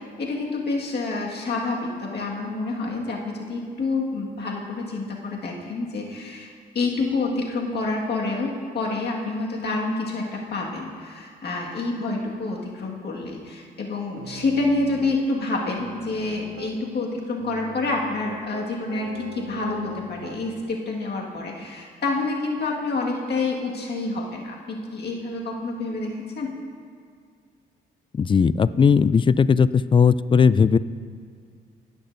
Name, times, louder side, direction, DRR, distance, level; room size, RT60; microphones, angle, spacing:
voice 1, 0.0-6.5 6.7-26.5, left 3 dB, 55° left, -2 dB, 1.9 m, -28 dB
Piano, 14.2-15.2 15.6-16.8 17.4-20.6, right 7 dB, 75° right, 0.6 m, -41 dB
voice 2, 28.1-30.8, left 6 dB, 25° left, 17 dB, 0.3 m, -17 dB
17.5 x 6.0 x 2.7 m, 2.2 s
supercardioid pair, 55°, 21 cm